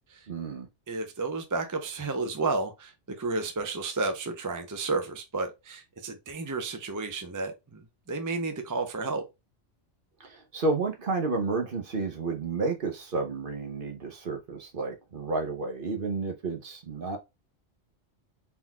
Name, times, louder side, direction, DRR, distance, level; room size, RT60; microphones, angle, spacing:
voice 1, 0.3-0.7 10.2-17.2, right 3 dB, 50° right, 1.0 m, -31 dB
voice 2, 0.9-9.3, right 3 dB, 20° right, 0.5 m, -32 dB
4.2 x 3.9 x 2.3 m
omnidirectional pair, 1.3 m